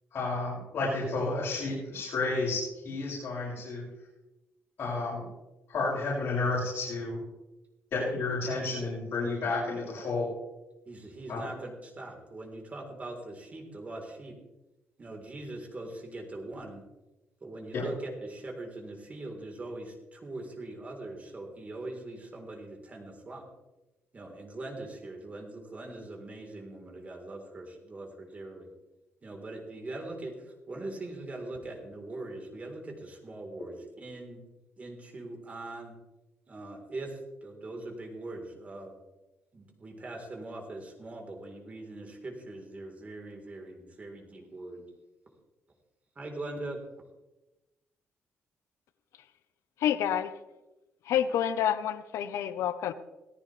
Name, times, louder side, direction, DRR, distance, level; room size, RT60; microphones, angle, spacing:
voice 1, 0.1-3.8 4.8-5.2 5.7-7.2 7.9-10.3 11.3-11.4 17.7-17.8, left 3 dB, 55° left, -7 dB, 6.3 m, -31 dB
voice 2, 10.9-14.4 15.0-16.8 17.4-23.4 24.1-28.7 29.2-34.4 34.8-36.0 36.5-38.9 39.5-44.8 46.2-46.8, right 2 dB, 30° right, 1 dB, 3.8 m, -42 dB
voice 3, 49.8-50.3 51.1-52.9, left 10 dB, 90° left, 12 dB, 0.8 m, -28 dB
17.5 x 15.5 x 3.3 m, 1.0 s
cardioid pair, 120°, 5 cm